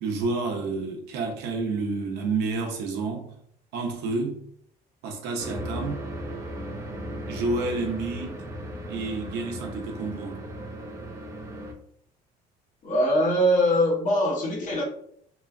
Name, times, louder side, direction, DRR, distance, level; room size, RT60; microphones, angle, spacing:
voice 1, 0.0-3.3 3.7-4.4 5.0-6.1 7.3-8.3 8.9-10.4, right 3 dB, 85° right, 0.6 m, -29 dB
sound 1, 5.4-11.7, equal, 20° right, 0.5 m, -36 dB
voice 2, 12.8-14.8, equal, 50° left, 0.9 m, -22 dB
3.0 x 2.2 x 2.3 m
cardioid pair, 110°, 17 cm